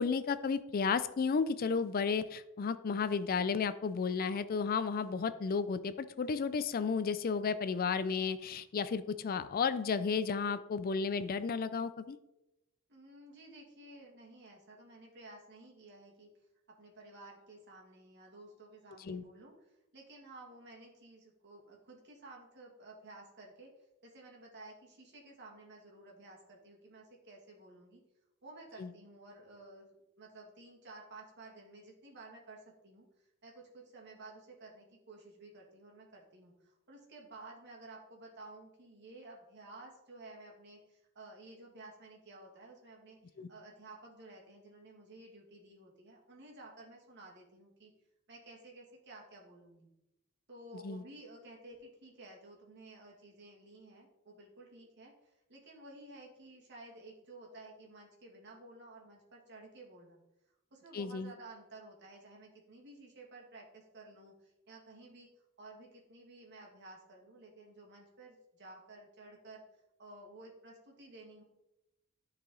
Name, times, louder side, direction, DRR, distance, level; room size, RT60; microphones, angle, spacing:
voice 1, 0.0-12.2 19.0-19.2 28.8-28.9 43.4-43.5 50.8-51.0 60.9-61.3, left 5 dB, 45° left, 13 dB, 0.4 m, -33 dB
voice 2, 12.9-16.3 16.8-23.7 24.0-28.0 28.4-47.9 48.3-49.9 50.5-60.2 60.7-65.3 65.6-69.6 70.0-71.4, right 2 dB, 55° right, -2 dB, 2.2 m, -54 dB
13.0 x 4.8 x 3.9 m, 0.91 s
head